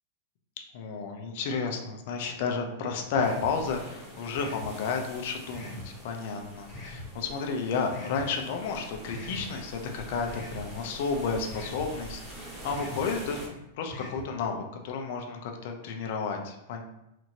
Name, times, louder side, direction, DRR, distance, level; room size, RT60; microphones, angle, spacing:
voice 1, 0.7-16.8, left 5 dB, 55° left, 3 dB, 0.5 m, -32 dB
sound 1, 3.1-3.5 4.3-4.7 5.5-5.9 6.7-7.1 7.9-8.2 9.1-9.4 10.3-10.6 11.5-11.8 12.7-13.0 13.9-14.2, left 1 dB, 25° left, 1.2 m, -41 dB
sound 2, 3.2-13.5, right 1 dB, 15° right, 0.8 m, -45 dB
2.9 x 2.5 x 2.7 m, 0.90 s
supercardioid pair, 145°, 0 cm